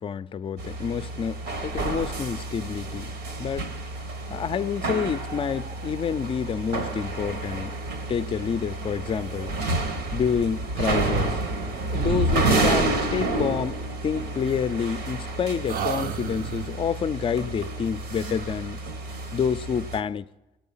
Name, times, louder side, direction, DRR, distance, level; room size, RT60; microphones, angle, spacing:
voice 1, 0.0-3.1 3.4-3.7 4.3-7.8 8.1-9.6 10.1-11.4 11.9-18.8 19.3-20.3, left 7 dB, 30° left, 0.4 m, -28 dB
sound 1, 0.6-20.0, right 2 dB, 90° right, 1.7 m, -29 dB
sound 2, 10.8-11.7 11.9-13.1 14.4-15.3 15.7-16.9, right 6 dB, 55° right, 0.6 m, -33 dB
22.0 x 8.8 x 5.6 m
cardioid pair, 110°, 17 cm